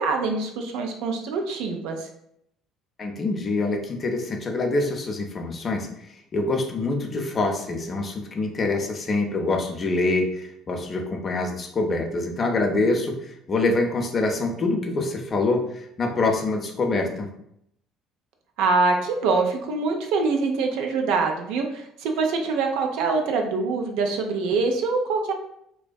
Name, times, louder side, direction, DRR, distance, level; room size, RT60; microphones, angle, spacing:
voice 1, 0.0-2.1 18.6-25.3, right 4 dB, 70° right, 3 dB, 0.4 m, -24 dB
voice 2, 3.0-5.9 6.3-17.3, left 2 dB, 40° left, 3 dB, 0.5 m, -25 dB
2.5 x 2.2 x 2.2 m, 0.74 s
hypercardioid pair, 60°, 0 cm